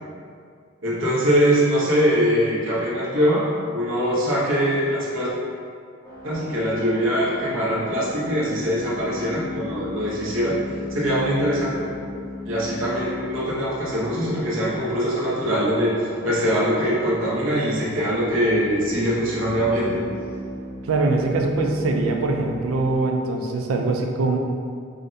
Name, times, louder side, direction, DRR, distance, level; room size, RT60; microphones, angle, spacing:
voice 1, 0.8-3.5 3.7-5.3 6.2-10.6 10.9-11.9 12.4-20.0, equal, 70° right, -6 dB, 0.9 m, -22 dB
sound 1, 6.0-23.0, left 1 dB, 10° left, 0.7 m, -36 dB
voice 2, 20.9-24.4, right 3 dB, 90° right, 2 dB, 0.4 m, -22 dB
4.9 x 2.1 x 2.6 m, 2.2 s
head